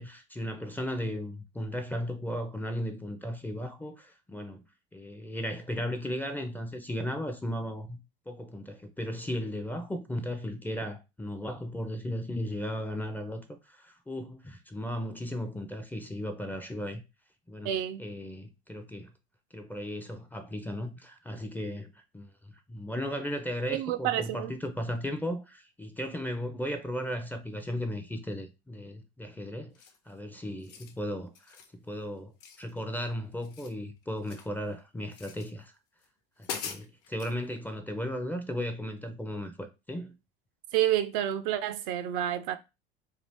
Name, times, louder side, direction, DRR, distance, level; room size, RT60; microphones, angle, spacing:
voice 1, 0.0-4.6 4.9-8.0 8.3-17.0 17.5-17.7 18.0-19.1 19.5-29.7 30.1-35.7 36.4-40.1, equal, 5° left, 0.4 m, -36 dB
voice 2, 17.6-18.0 23.7-24.5 40.7-42.6, right 12 dB, 50° right, 0.4 m, -29 dB
sound 1, 29.7-30.1 30.5-31.0 31.3-31.7 32.4-33.1 33.3-34.6 35.1-35.5 36.0-36.1 36.4-37.4, left 7 dB, 50° left, 0.7 m, -42 dB
2.7 x 2.4 x 3.4 m
hypercardioid pair, 85°, 31 cm